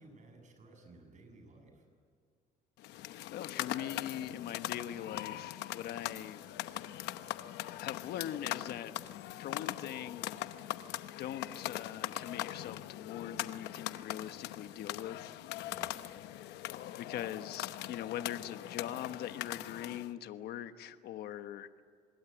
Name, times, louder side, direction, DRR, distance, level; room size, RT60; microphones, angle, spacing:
voice 1, 0.0-1.9 15.6-16.2, right 2 dB, 45° right, 4 dB, 7.8 m, -57 dB
sound 1, 2.8-20.1, left 14 dB, 90° left, 0.9 m, -41 dB
voice 2, 3.3-6.4 7.8-9.0 9.4-10.3 11.0-15.3 16.9-21.8, left 11 dB, 70° left, 10 dB, 1.2 m, -42 dB
26.0 x 21.5 x 9.1 m, 2.1 s
cardioid pair, 110°, 17 cm